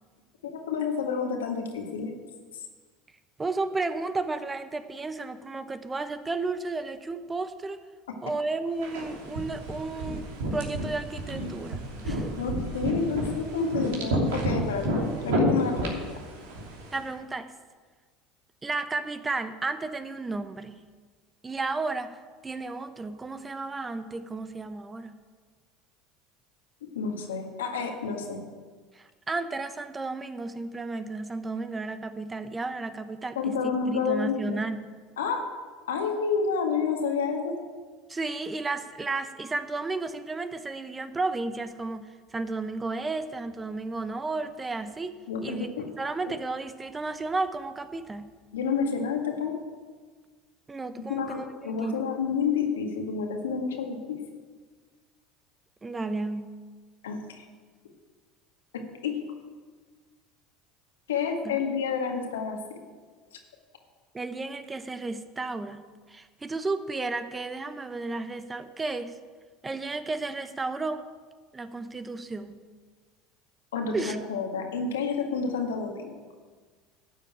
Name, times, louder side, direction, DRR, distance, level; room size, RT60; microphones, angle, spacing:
voice 1, 0.4-2.1 12.0-15.0 15.2-16.2 27.0-28.4 33.4-34.6 35.2-35.4 35.9-37.5 45.3-45.9 46.3-46.4 48.5-49.6 51.1-54.2 57.0-57.5 58.7-59.2 61.1-62.8 73.7-76.2, left 5 dB, 85° left, 3 dB, 1.8 m, -29 dB
voice 2, 3.4-7.8 8.2-10.3 10.5-12.2 16.9-17.5 18.6-20.8 21.4-25.2 28.9-34.9 38.1-45.1 45.4-45.7 46.0-48.4 50.7-51.5 51.8-52.0 55.8-56.6 61.4-61.6 64.1-69.2 69.6-71.0 71.5-72.6 73.9-74.2, right 3 dB, 20° right, 11 dB, 0.9 m, -33 dB
sound 1, 8.8-17.0, right 1 dB, 75° right, 2.9 m, -30 dB
12.0 x 7.0 x 8.8 m, 1.5 s
hypercardioid pair, 80°, 0 cm